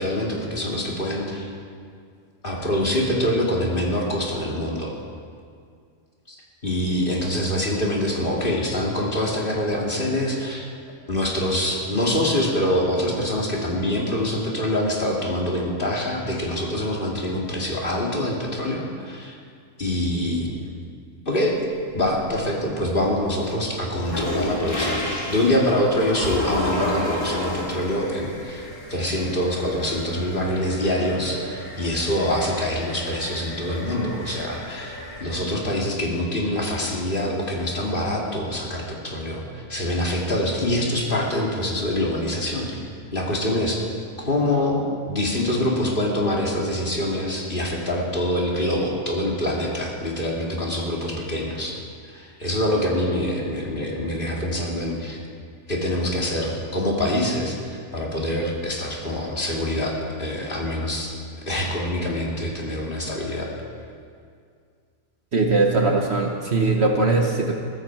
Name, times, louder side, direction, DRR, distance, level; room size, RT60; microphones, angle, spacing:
voice 1, 0.0-1.5 2.4-5.0 6.3-6.4 6.6-10.7 11.1-19.3 19.8-20.5 21.3-21.6 21.9-42.8 43.1-43.8 44.2-51.7 52.0-55.2 55.7-61.1 61.5-63.5, left 1 dB, 35° left, -2 dB, 2.7 m, -25 dB
sound 1, 21.5-22.5 22.9-35.2, left 1 dB, 75° left, 4.1 m, -32 dB
voice 2, 65.3-67.6, right 3 dB, 50° right, 2 dB, 1.3 m, -20 dB
22.0 x 13.5 x 4.7 m, 2.2 s
omnidirectional pair, 1.5 m